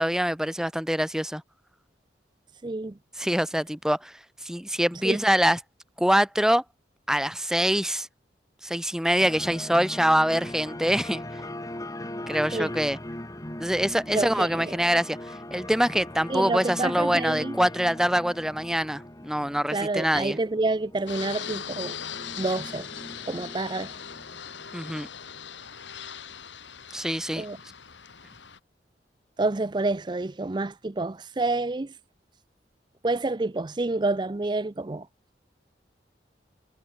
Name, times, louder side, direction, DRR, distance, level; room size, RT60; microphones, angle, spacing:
voice 1, 0.0-1.4 3.2-4.1 4.4-5.6 6.0-6.6 7.1-8.1 8.6-11.2 12.3-13.0 13.6-15.2 15.5-20.4 24.7-25.1 26.9-27.4, equal, 5° right, 1.4 m, -24 dB
voice 2, 2.6-3.0 5.0-5.2 12.5-12.7 14.1-14.8 16.3-17.6 19.7-22.0 22.4-22.9 23.3-23.9 27.4-27.6 29.4-32.0 33.0-35.1, right 2 dB, 25° right, 0.5 m, -28 dB
sound 1, 9.2-25.5, left 1 dB, 20° left, 1.8 m, -40 dB
Fixed-wing aircraft airplane, 21.1-28.6, left 8 dB, 90° left, 2.1 m, -40 dB
head